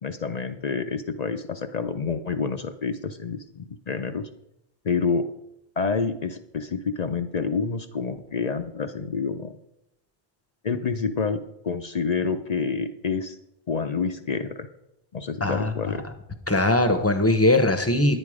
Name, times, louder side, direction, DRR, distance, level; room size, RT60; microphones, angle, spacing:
voice 1, 0.0-4.3 4.8-5.3 5.8-9.5 10.6-13.4 13.7-14.7 15.1-16.0, left 5 dB, 45° left, 8 dB, 0.6 m, -28 dB
voice 2, 15.4-15.7 16.0-16.1 16.5-18.2, left 2 dB, 15° left, 8 dB, 0.7 m, -21 dB
10.0 x 9.0 x 4.9 m, 0.83 s
omnidirectional pair, 1.1 m